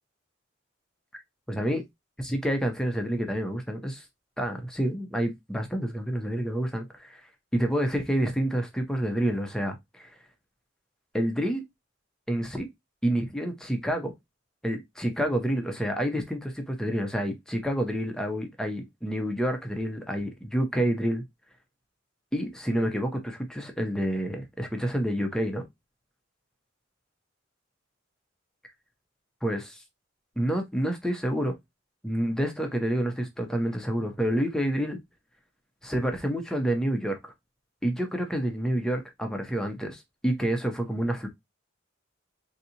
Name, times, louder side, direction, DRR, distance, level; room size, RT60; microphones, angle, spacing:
voice 1, 1.5-1.8 2.2-4.1 4.4-7.2 7.5-10.1 11.1-11.6 12.3-12.7 13.0-14.1 14.6-21.2 22.3-25.6 29.4-29.8 30.4-31.5 32.0-35.0 35.8-37.3 37.8-41.3, right 1 dB, 5° left, 0.7 m, -28 dB
3.9 x 2.8 x 2.7 m
head